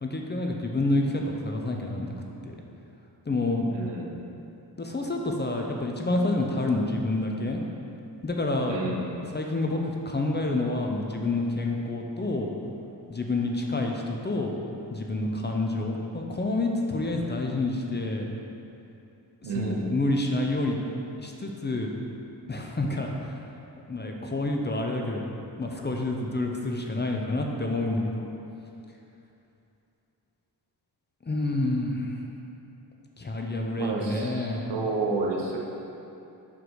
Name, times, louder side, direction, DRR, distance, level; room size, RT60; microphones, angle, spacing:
voice 1, 0.0-2.1 2.4-2.6 3.3-3.7 4.8-7.6 8.2-8.8 9.3-12.5 13.1-14.5 14.9-18.3 19.4-20.8 21.2-21.9 22.5-23.4 23.9-25.3 25.6-28.3 31.3-32.1 33.2-34.7, left 2 dB, 25° left, 1 dB, 0.7 m, -28 dB
voice 2, 3.7-4.2 8.6-9.1 19.4-19.8 33.8-35.6, right 3 dB, 75° right, -1 dB, 1.1 m, -30 dB
5.7 x 5.1 x 4.8 m, 2.8 s
cardioid pair, 75°, 43 cm